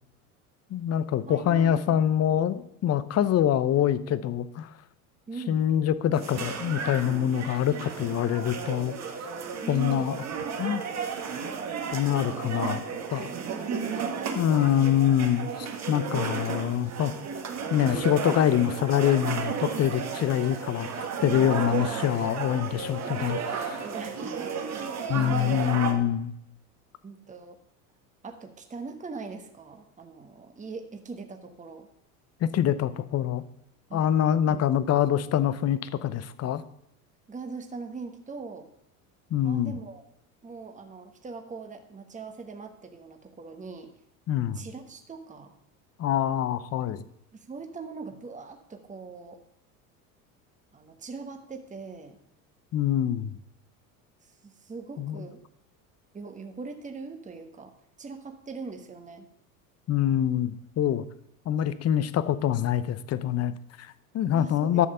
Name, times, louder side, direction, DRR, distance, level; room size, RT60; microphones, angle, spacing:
voice 1, 0.7-4.7 5.5-9.0 9.7-10.2 10.6-10.8 11.9-12.8 13.1-13.3 14.4-17.1 17.7-23.8 25.1-26.3 32.4-33.4 33.9-36.6 39.3-39.7 44.3-44.7 46.0-47.0 52.7-53.4 55.0-55.2 59.9-61.0 61.5-64.9, left 10 dB, 35° left, 15 dB, 0.7 m, -25 dB
voice 2, 1.3-2.0 5.3-5.6 9.6-10.2 13.4-14.8 23.8-24.5 24.8-25.7 27.0-27.6 28.2-31.9 33.9-34.1 34.5-34.7 37.3-38.7 39.4-40.0 40.4-43.9 44.5-45.5 47.3-49.4 50.7-52.2 54.2-55.4 56.1-57.7 58.0-59.3 64.3-64.8, right 4 dB, 15° right, 5 dB, 1.3 m, -41 dB
sound 1, 6.1-25.9, right 6 dB, 40° right, 1.6 m, -33 dB
11.5 x 6.4 x 5.5 m, 0.76 s
hypercardioid pair, 85°, 42 cm